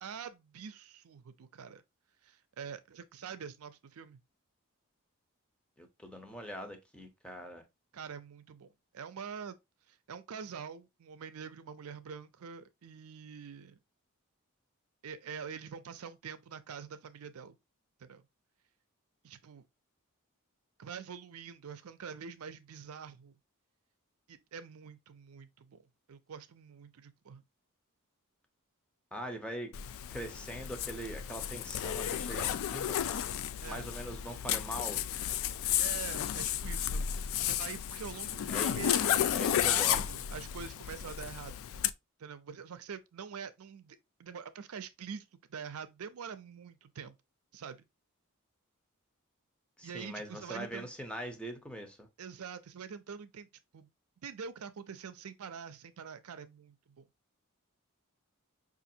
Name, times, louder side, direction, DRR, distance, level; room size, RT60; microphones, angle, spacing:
voice 1, 0.0-1.8 2.2-4.2 7.9-9.6 9.9-13.8 15.0-17.5 18.0-18.2 19.2-19.6 20.8-23.4 24.3-25.8 26.1-27.4 33.6-34.1 35.8-41.8 42.2-47.2 47.5-47.9 49.8-50.9 52.2-53.5 53.7-53.9 54.2-57.0, right 6 dB, 70° right, 0.5 m, -45 dB
voice 2, 5.8-7.6 29.1-29.7 30.1-33.3 33.7-35.0 38.5-38.9 39.3-40.0 49.8-52.1, equal, 5° left, 0.7 m, -42 dB
Zipper (clothing), 29.7-41.9, left 10 dB, 65° left, 0.3 m, -33 dB
5.0 x 2.5 x 2.7 m
head